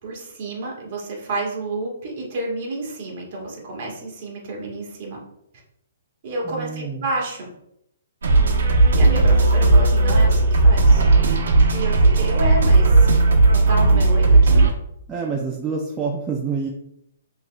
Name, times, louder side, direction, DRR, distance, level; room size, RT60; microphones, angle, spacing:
voice 1, 0.0-5.2 6.2-7.5 8.9-11.0 11.7-13.2 13.5-14.6, right 2 dB, 40° right, -2 dB, 1.5 m, -30 dB
voice 2, 6.4-7.0 15.1-16.7, right 5 dB, 10° right, -2 dB, 0.4 m, -27 dB
sound 1, 8.2-14.7, right 3 dB, 75° right, 0.9 m, -15 dB
5.4 x 2.9 x 2.3 m, 0.77 s
hypercardioid pair, 160°, 0 cm